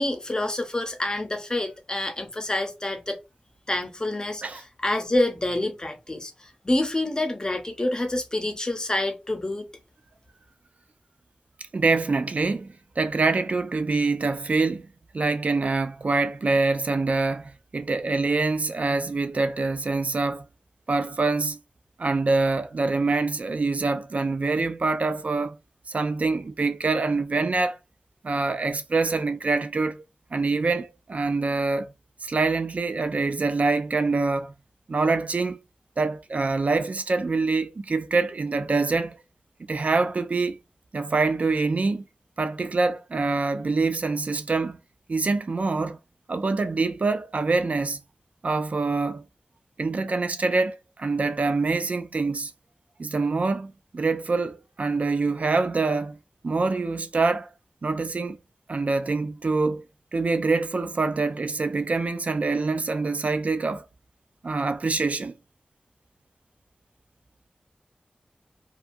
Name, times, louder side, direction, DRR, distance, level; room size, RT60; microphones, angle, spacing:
voice 1, 0.0-3.2 3.7-9.7, left 1 dB, 30° left, 0.7 m, -27 dB
voice 2, 11.7-12.7 13.0-14.9 15.1-20.4 20.9-21.6 22.0-25.6 25.9-27.8 28.2-30.0 30.3-31.9 32.2-34.5 34.9-35.6 36.0-39.2 39.7-40.6 40.9-42.0 42.4-44.8 45.1-46.0 46.3-48.0 48.4-49.2 49.8-52.5 53.0-56.2 56.4-57.5 57.8-58.4 58.7-59.8 60.1-63.9 64.4-65.3, right 3 dB, 65° right, 0.3 m, -25 dB
2.7 x 2.4 x 2.5 m
wide cardioid pair, 65°, 3 cm